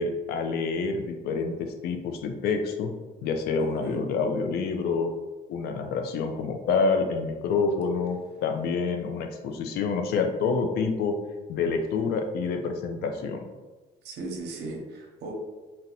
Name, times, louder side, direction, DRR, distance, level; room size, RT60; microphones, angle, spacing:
voice 1, 0.0-2.9 3.2-5.1 5.5-11.2 11.5-13.4, left 4 dB, 70° left, 5 dB, 0.5 m, -27 dB
voice 2, 14.0-15.3, right 3 dB, 80° right, 1 dB, 0.7 m, -37 dB
3.9 x 2.1 x 2.8 m, 1.2 s
cardioid pair, 110°, 17 cm